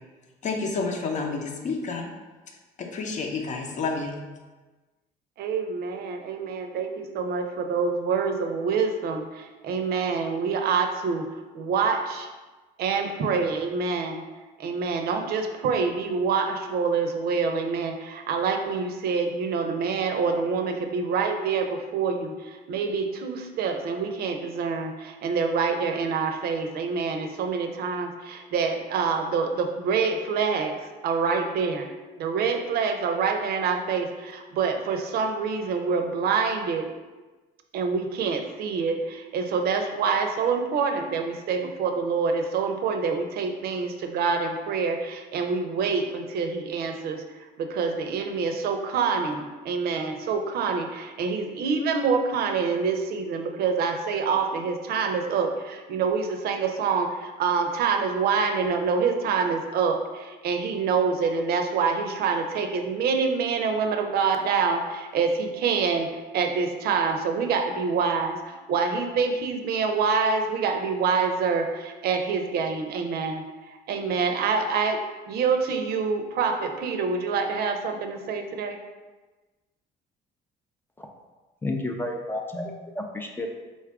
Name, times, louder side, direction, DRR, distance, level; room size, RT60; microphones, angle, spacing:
voice 1, 0.4-2.1 2.8-4.1, left 4 dB, 45° left, 2 dB, 0.8 m, -29 dB
voice 2, 5.4-11.3 11.5-12.3 12.8-14.2 14.6-30.8 31.0-31.9 32.2-36.9 37.7-47.2 47.6-73.4 73.9-78.8, right 5 dB, 65° right, 5 dB, 0.6 m, -26 dB
voice 3, 81.6-83.5, left 1 dB, 10° left, 2 dB, 0.5 m, -31 dB
4.2 x 2.4 x 4.6 m, 1.2 s
cardioid pair, 110°, 17 cm